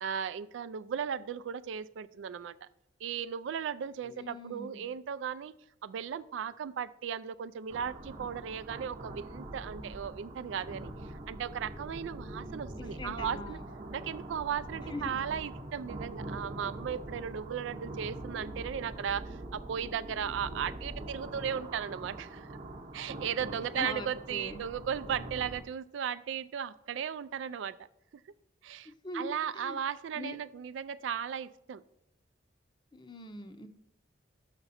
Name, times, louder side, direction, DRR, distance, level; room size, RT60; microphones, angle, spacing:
voice 1, 0.0-2.7 3.0-5.5 5.8-13.6 13.9-22.5 22.9-27.8 28.6-31.8, right 8 dB, 85° right, 15 dB, 0.3 m, -36 dB
voice 2, 4.0-4.8 12.7-13.7 14.9-15.2 23.6-24.6 28.8-29.8 30.1-30.4 32.9-33.7, left 2 dB, 25° left, 8 dB, 0.6 m, -42 dB
sound 1, 7.7-25.6, right 1 dB, 35° right, 0.8 m, -43 dB
6.6 x 5.9 x 4.1 m, 0.81 s
head